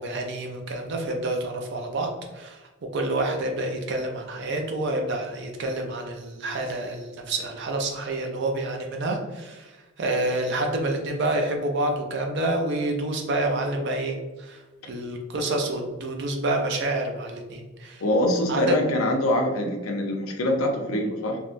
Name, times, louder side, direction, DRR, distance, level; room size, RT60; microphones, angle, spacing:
voice 1, 0.0-2.6 2.9-14.6 14.9-18.0 18.5-18.9, right 2 dB, 55° right, 3 dB, 0.4 m, -28 dB
voice 2, 18.0-21.4, left 1 dB, 80° left, 2 dB, 0.6 m, -24 dB
3.5 x 2.1 x 2.4 m, 1.2 s
head